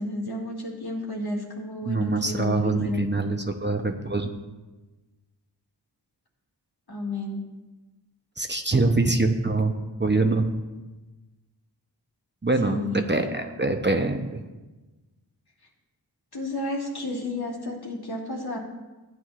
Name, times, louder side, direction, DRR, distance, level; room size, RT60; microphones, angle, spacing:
voice 1, 0.0-3.0 6.9-7.4 12.6-13.3 16.3-18.6, left 2 dB, 60° left, -3 dB, 2.4 m, -31 dB
voice 2, 1.8-4.3 8.4-10.5 12.4-12.8 13.1-14.4, right 3 dB, 25° right, 4 dB, 0.8 m, -24 dB
15.5 x 9.3 x 2.5 m, 1.2 s
wide cardioid pair, 50°, 42 cm